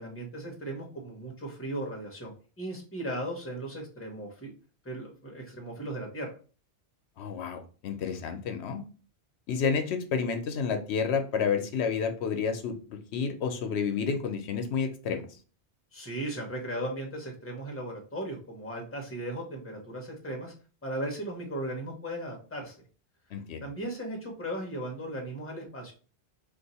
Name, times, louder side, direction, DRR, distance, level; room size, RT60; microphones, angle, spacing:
voice 1, 0.0-4.5 4.8-6.3 15.9-20.5 20.8-22.8 23.6-25.9, right 1 dB, 15° left, 1 dB, 0.8 m, -37 dB
voice 2, 7.2-8.8 9.5-15.2 23.3-23.7, left 6 dB, 80° left, 6 dB, 0.9 m, -30 dB
2.6 x 2.4 x 4.0 m, 0.37 s
omnidirectional pair, 1.1 m